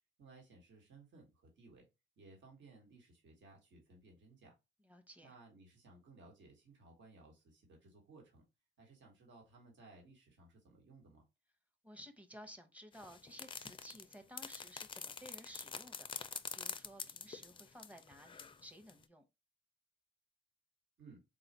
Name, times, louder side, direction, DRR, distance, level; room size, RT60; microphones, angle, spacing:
voice 1, 0.2-1.8 2.2-4.5 5.2-8.4 8.8-11.2 21.0-21.2, right 3 dB, 70° right, 1.4 m, -60 dB
voice 2, 4.8-5.3 11.8-19.2, equal, 5° right, 0.8 m, -55 dB
sound 1, 12.9-18.6 18.9-19.0, left 6 dB, 25° left, 0.4 m, -46 dB
3.9 x 2.4 x 4.1 m
cardioid pair, 90°, 20 cm